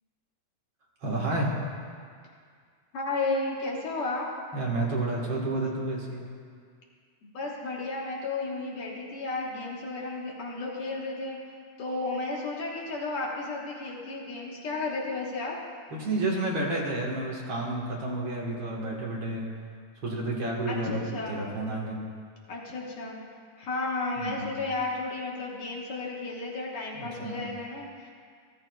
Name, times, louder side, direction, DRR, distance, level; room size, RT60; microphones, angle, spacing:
voice 1, 1.0-1.5 4.5-6.3 15.9-19.5 20.0-22.0 24.2-24.5 27.0-27.4, right 2 dB, 50° right, -3 dB, 1.9 m, -30 dB
voice 2, 2.9-4.3 7.2-11.4 11.8-15.6 20.7-21.4 22.5-23.2 23.6-28.1, left 3 dB, 55° left, -3 dB, 1.9 m, -33 dB
14.0 x 14.0 x 2.3 m, 2.1 s
omnidirectional pair, 3.6 m